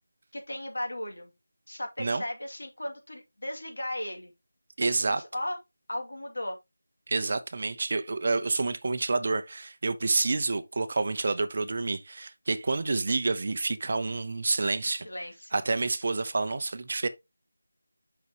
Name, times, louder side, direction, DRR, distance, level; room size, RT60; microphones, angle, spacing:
voice 1, 0.3-1.3 1.7-4.3 4.8-5.6 5.9-6.6 15.0-15.5, left 1 dB, 75° left, 2.3 m, -36 dB
voice 2, 4.8-5.2 7.1-15.1 15.5-17.1, right 3 dB, 45° right, 0.6 m, -28 dB
6.8 x 5.9 x 2.9 m
figure-of-eight pair, 170°, 0 cm